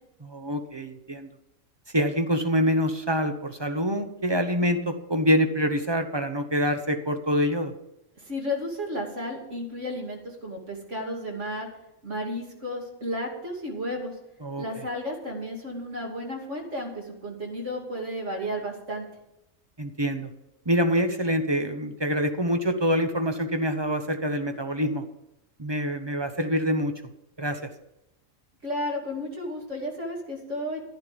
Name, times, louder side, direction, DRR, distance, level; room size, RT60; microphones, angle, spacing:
voice 1, 0.2-1.3 1.9-7.7 14.4-14.8 19.8-20.3 20.7-25.0 25.6-26.9 27.4-27.7, equal, 25° right, 8 dB, 0.8 m, -26 dB
voice 2, 8.2-11.7 12.0-14.1 14.6-19.1 28.6-30.8, equal, 55° right, -1 dB, 3.0 m, -33 dB
11.5 x 11.5 x 5.2 m, 0.87 s
omnidirectional pair, 1.4 m